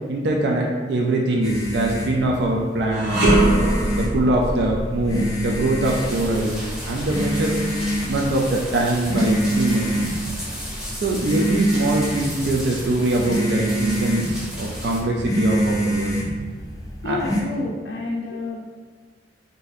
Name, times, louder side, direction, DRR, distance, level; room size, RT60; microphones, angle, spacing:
voice 1, 0.1-3.2 3.9-7.6 8.1-10.0 11.0-16.2 17.0-17.2, right 1 dB, 60° right, -1 dB, 0.4 m, -23 dB
sound 1, 1.4-17.4, right 1 dB, 20° left, 0.5 m, -27 dB
sound 2, 2.9-12.2 12.6-12.8 13.6-14.5, right 1 dB, 90° right, 0.8 m, -25 dB
sound 3, 5.8-15.0, equal, 5° right, 1.0 m, -35 dB
voice 2, 16.9-18.6, left 3 dB, 80° left, -4 dB, 0.5 m, -29 dB
3.9 x 2.6 x 2.6 m, 1.5 s
head